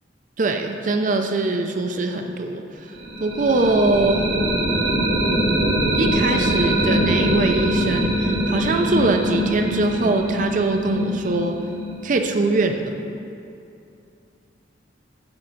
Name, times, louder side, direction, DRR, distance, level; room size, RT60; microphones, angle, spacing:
voice 1, 0.4-2.6 3.2-4.2 5.9-11.6 12.0-12.9, right 2 dB, 45° right, 5 dB, 0.5 m, -22 dB
sound 1, 2.9-12.7, equal, 80° right, 1.2 m, -23 dB
7.8 x 4.5 x 5.7 m, 2.6 s
head